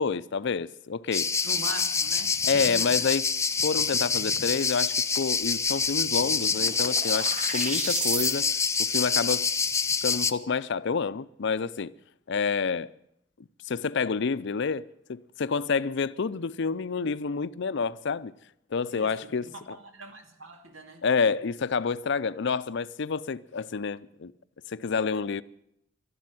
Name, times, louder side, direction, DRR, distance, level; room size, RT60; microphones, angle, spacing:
voice 1, 0.0-1.3 2.4-3.3 3.6-8.5 8.8-9.5 10.0-11.9 12.3-12.9 13.7-18.3 18.7-19.5 21.0-24.3 24.7-25.4, left 5 dB, 65° left, 0.5 m, -28 dB
sound 1, 1.1-10.3, left 5 dB, 15° left, 0.6 m, -26 dB
voice 2, 1.4-3.0 18.9-21.0, right 1 dB, 85° right, 2.4 m, -42 dB
sound 2, 5.8-8.4, right 4 dB, 40° right, 1.4 m, -34 dB
12.5 x 12.0 x 9.6 m
head